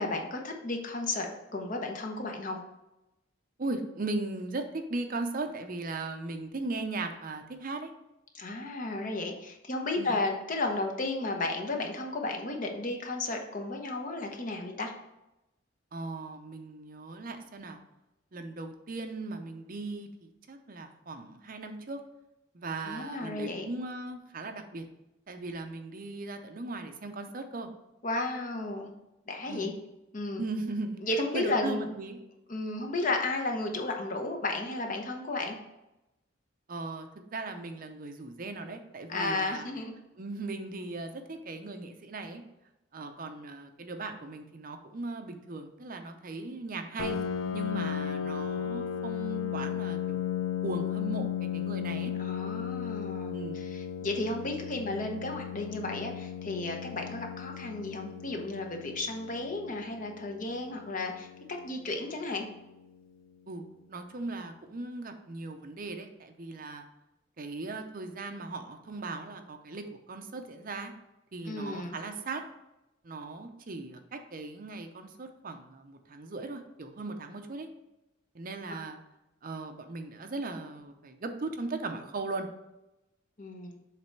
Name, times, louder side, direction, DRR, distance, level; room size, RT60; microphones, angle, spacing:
voice 1, 0.0-2.6 8.3-14.9 22.8-23.6 28.0-28.9 29.3-29.7 30.1-30.4 31.0-31.8 32.5-35.6 39.1-39.9 52.2-62.5 71.4-72.0 83.4-83.7, left 2 dB, 40° left, 3 dB, 0.9 m, -33 dB
voice 2, 3.6-7.9 10.0-10.1 15.9-17.8 18.3-22.0 22.5-24.9 25.3-27.7 29.5-29.7 30.4-31.0 31.3-32.2 36.7-39.7 40.2-42.4 42.9-47.2 47.5-52.1 53.3-53.6 63.5-66.8 67.4-70.9 71.3-72.4 73.0-77.7 78.3-79.0 79.4-82.5, right 3 dB, 45° right, 6 dB, 0.6 m, -38 dB
Piano, 47.0-62.4, left 9 dB, 80° left, 0.4 m, -36 dB
7.5 x 3.3 x 4.5 m, 0.92 s
head